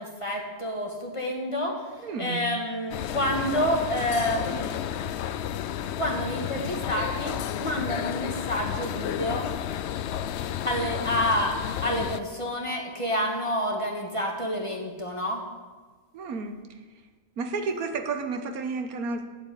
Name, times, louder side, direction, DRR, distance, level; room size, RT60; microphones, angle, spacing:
voice 1, 0.0-1.7 2.2-4.7 6.0-7.3 7.6-9.5 10.6-11.5 11.8-15.4, equal, 20° left, -1 dB, 1.9 m, -28 dB
voice 2, 2.0-2.4 16.1-16.6 17.4-19.2, right 4 dB, 90° right, 7 dB, 1.5 m, -31 dB
sound 1, 2.9-12.2, left 10 dB, 65° left, 0.7 m, -32 dB
9.6 x 8.2 x 9.0 m, 1.4 s
omnidirectional pair, 1.5 m